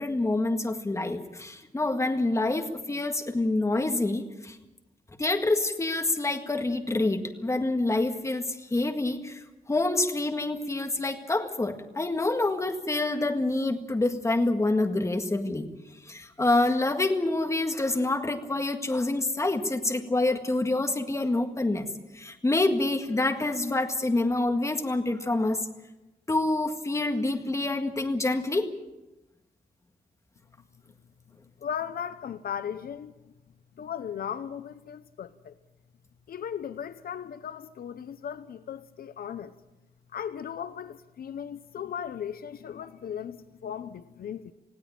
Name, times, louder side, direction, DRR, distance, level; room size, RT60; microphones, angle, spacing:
voice 1, 0.0-4.6 5.2-15.7 16.1-21.9 22.1-25.6 26.3-28.7, left 2 dB, 20° left, 1.8 m, -27 dB
voice 2, 31.6-33.2 33.8-35.6 36.3-39.5 40.1-44.5, left 8 dB, 75° left, 0.8 m, -37 dB
19.5 x 16.5 x 8.9 m
wide cardioid pair, 135°, 16 cm